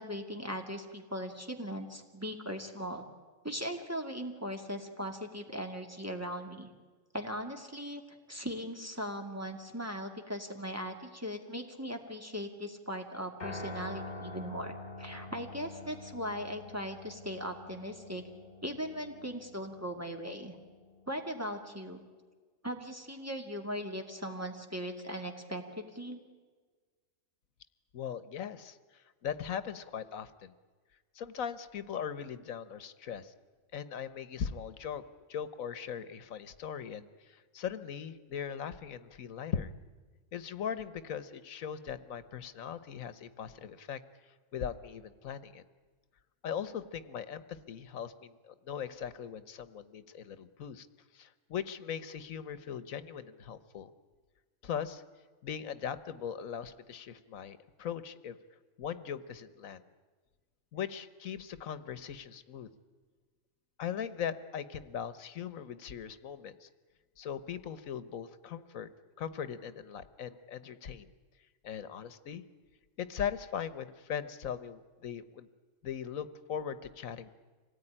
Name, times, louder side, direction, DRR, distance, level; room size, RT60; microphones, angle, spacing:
voice 1, 0.0-3.0 3.4-6.7 7.1-8.0 8.3-18.2 18.6-20.6 21.1-22.0 22.6-26.2, equal, 10° right, 4 dB, 2.3 m, -39 dB
Piano, 13.4-21.7, left 2 dB, 40° left, 3.0 m, -47 dB
voice 2, 27.9-30.5 31.1-33.3 33.7-35.0 35.3-39.7 40.3-44.0 44.5-45.6 46.4-50.9 51.1-53.9 54.6-55.0 55.4-58.4 58.8-59.8 60.7-62.7 63.8-66.7 67.2-68.9 69.2-71.1 71.6-72.4 73.0-75.5 75.8-77.3, left 8 dB, 90° left, 14 dB, 1.4 m, -39 dB
26.0 x 18.0 x 10.0 m, 1.4 s
omnidirectional pair, 1.4 m